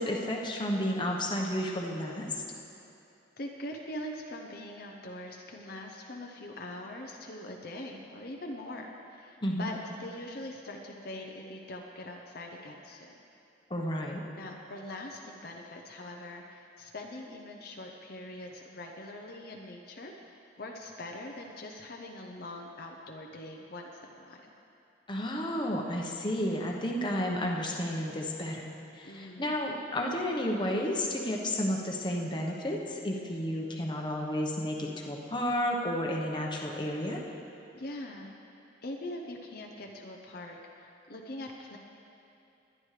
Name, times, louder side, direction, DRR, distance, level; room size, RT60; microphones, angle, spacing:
voice 1, 0.0-2.4 9.4-9.7 13.7-14.2 25.1-28.6 29.0-37.2, left 1 dB, 25° left, -1 dB, 1.1 m, -32 dB
voice 2, 3.4-13.2 14.4-24.5 29.0-29.5 37.7-38.3 38.8-41.8, left 1 dB, 50° left, 1 dB, 0.8 m, -42 dB
21.5 x 10.5 x 3.3 m, 2.8 s
head